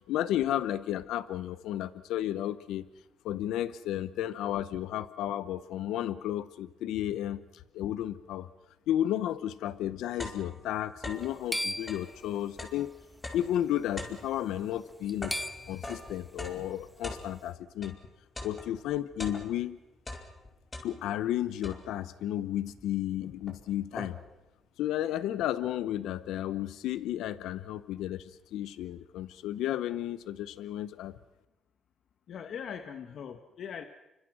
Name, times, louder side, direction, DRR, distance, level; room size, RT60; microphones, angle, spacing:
voice 1, 0.1-2.9 3.2-7.4 7.7-8.5 8.9-12.9 13.3-15.4 15.7-18.0 18.4-19.8 20.8-24.2 24.8-31.1, left 12 dB, 90° left, 14 dB, 0.8 m, -33 dB
sound 1, 9.9-11.4 11.8-18.0 18.4-19.7 20.0-21.3 21.6-22.2 22.8-22.9 23.2-24.4, left 2 dB, 25° left, 4.9 m, -43 dB
sound 2, 11.1-12.8 13.8-14.0 14.3-14.4 14.9-16.1, equal, ahead, 1.2 m, -37 dB
voice 2, 32.3-33.8, left 7 dB, 65° left, 8 dB, 1.4 m, -40 dB
30.0 x 25.0 x 6.2 m, 0.99 s
cardioid pair, 90°, 0 cm